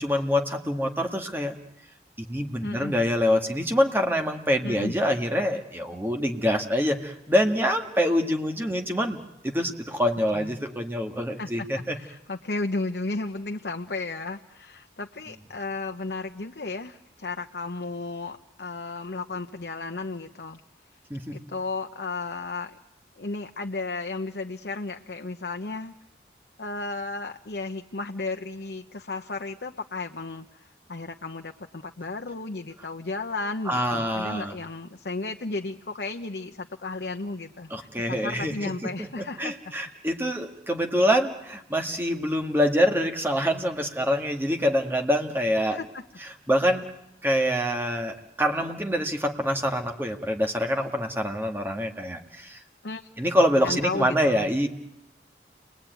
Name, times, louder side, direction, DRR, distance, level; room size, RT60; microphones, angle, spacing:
voice 1, 0.0-1.6 2.2-12.0 21.1-21.4 33.7-34.6 37.7-45.8 46.2-46.8 47.2-52.6 53.2-54.7, equal, 10° right, 4 dB, 1.8 m, -25 dB
voice 2, 2.6-2.9 4.6-4.9 10.3-10.5 11.4-20.6 21.3-22.8 23.2-25.9 26.6-39.7 45.7-46.0 52.8-53.1 53.6-54.5, left 3 dB, 70° left, 5 dB, 0.9 m, -34 dB
29.5 x 21.5 x 9.3 m, 0.89 s
head